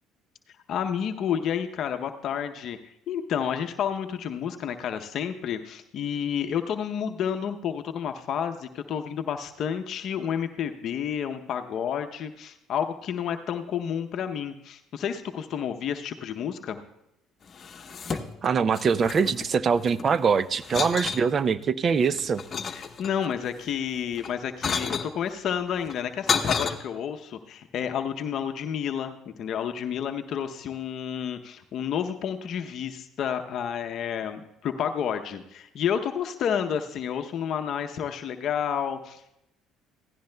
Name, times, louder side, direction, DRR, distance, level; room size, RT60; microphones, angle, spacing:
voice 1, 0.5-2.8 3.1-16.8 22.7-39.3, left 8 dB, 60° left, 6 dB, 0.7 m, -30 dB
sound 1, 17.5-18.5 18.7-20.1 20.6-21.3 21.8-23.4 24.1-25.1 25.8-26.7, left 6 dB, 40° left, 1.0 m, -30 dB
voice 2, 18.1-22.4, right 6 dB, 40° right, 16 dB, 0.5 m, -23 dB
16.5 x 14.5 x 2.2 m, 0.80 s
supercardioid pair, 90°, 0 cm